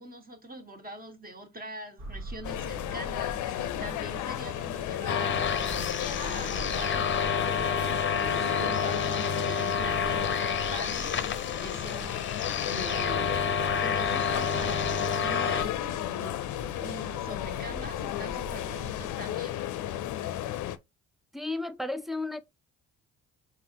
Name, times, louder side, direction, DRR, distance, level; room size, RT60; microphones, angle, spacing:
voice 1, 0.0-5.9 6.2-7.0 7.5-19.6, right 1 dB, 30° right, 1.5 m, -44 dB
sound 1, 2.0-19.1, right 1 dB, 65° right, 1.5 m, -45 dB
sound 2, 2.4-20.8, left 12 dB, 80° left, 0.6 m, -34 dB
Longwave Radio Tuning, 5.1-15.6, left 6 dB, 40° left, 0.6 m, -29 dB
voice 2, 21.3-22.4, left 2 dB, ahead, 0.4 m, -33 dB
4.1 x 4.0 x 2.9 m
cardioid pair, 90°, 30 cm